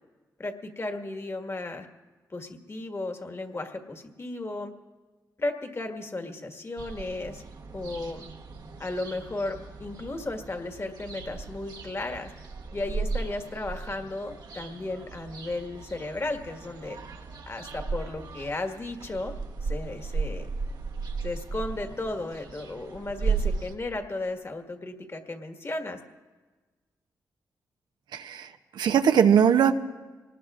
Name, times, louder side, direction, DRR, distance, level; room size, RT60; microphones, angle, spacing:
voice 1, 0.4-1.9 2.3-4.7 5.4-7.4 7.7-8.3 8.8-12.3 12.7-17.0 17.5-19.3 19.6-20.5 21.2-26.0, left 2 dB, 35° left, 5 dB, 1.7 m, -34 dB
sound 1, 6.8-23.8, right 4 dB, 65° right, 1.1 m, -36 dB
voice 2, 28.1-29.7, right 8 dB, 90° right, 8 dB, 0.7 m, -21 dB
24.5 x 19.5 x 2.5 m, 1.3 s
cardioid pair, 60°, 7 cm